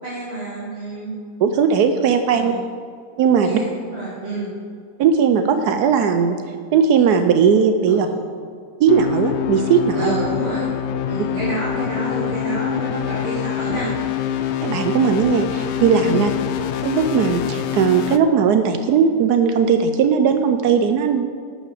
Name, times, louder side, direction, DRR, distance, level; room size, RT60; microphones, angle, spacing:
voice 1, 0.0-1.2 2.3-2.6 3.4-4.5 7.9-8.2 9.9-10.7 11.0-13.9 16.1-16.3, right 1 dB, 40° right, -9 dB, 2.5 m, -29 dB
voice 2, 1.4-2.5 3.2-3.6 5.0-6.4 6.7-8.1 8.8-10.2 14.6-16.3 16.8-21.2, right 6 dB, 80° right, 7 dB, 1.2 m, -17 dB
sound 1, 8.9-18.2, left 9 dB, 70° left, 0.6 m, -25 dB
11.5 x 5.9 x 6.7 m, 2.1 s
omnidirectional pair, 1.7 m